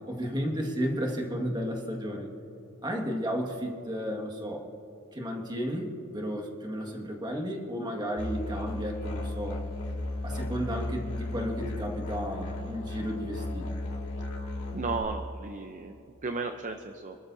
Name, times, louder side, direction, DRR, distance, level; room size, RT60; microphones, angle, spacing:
voice 1, 0.0-2.3 2.8-4.6 5.1-9.6 10.2-13.7, equal, 20° right, 1 dB, 1.8 m, -33 dB
Musical instrument, 8.2-15.0, left 2 dB, 80° left, 2.7 m, -35 dB
voice 2, 14.7-16.0 16.2-17.2, right 3 dB, 35° right, 6 dB, 0.6 m, -34 dB
27.0 x 13.0 x 2.7 m, 3.0 s
head